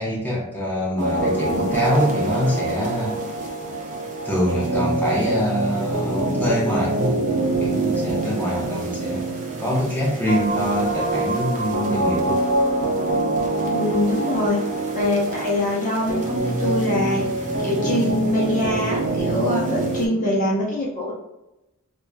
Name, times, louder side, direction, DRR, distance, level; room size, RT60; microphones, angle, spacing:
voice 1, 0.0-3.2 4.2-7.1 7.6-9.2 9.6-12.4, equal, 10° left, -5 dB, 0.9 m, -24 dB
sound 1, 1.0-20.1, right 2 dB, 35° right, 0.7 m, -25 dB
voice 2, 13.7-14.6 14.9-17.2 17.6-21.1, left 1 dB, 35° left, -5 dB, 0.8 m, -23 dB
4.8 x 2.5 x 2.3 m, 0.94 s
head